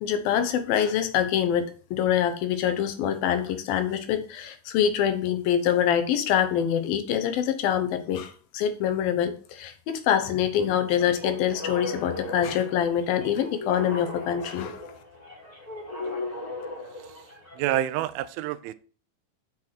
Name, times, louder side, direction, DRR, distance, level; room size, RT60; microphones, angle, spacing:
voice 1, 0.0-14.8, left 9 dB, 75° left, 9 dB, 2.9 m, -25 dB
sound 1, 10.9-17.7, left 2 dB, 5° left, 3.2 m, -37 dB
voice 2, 17.6-18.7, right 13 dB, 85° right, 14 dB, 2.6 m, -28 dB
7.2 x 6.5 x 5.9 m, 0.40 s
omnidirectional pair, 4.3 m